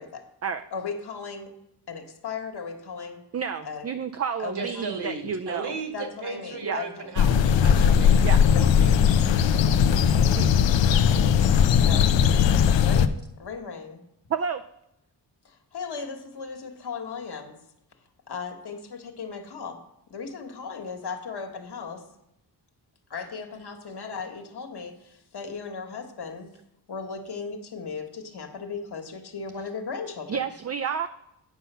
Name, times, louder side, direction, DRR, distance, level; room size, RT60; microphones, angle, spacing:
voice 1, 0.7-1.5 1.9-3.2 3.6-3.9 4.4-4.9 5.9-7.1 11.8-12.2 12.8-14.0 15.5-17.6 18.3-19.8 20.1-22.0 23.1-26.5 26.9-30.4, left 5 dB, 60° left, 5 dB, 1.6 m, -36 dB
voice 2, 3.3-5.7 6.6-6.8 8.2-8.4 10.4-10.5 14.3-14.6 30.3-31.1, right 7 dB, 35° right, 8 dB, 0.5 m, -30 dB
voice 3, 4.5-9.4, right 4 dB, 65° right, 4 dB, 2.2 m, -36 dB
sound 1, 7.2-13.1, left 8 dB, 80° left, 0.7 m, -19 dB
9.2 x 5.7 x 5.6 m, 0.81 s
cardioid pair, 70°, 44 cm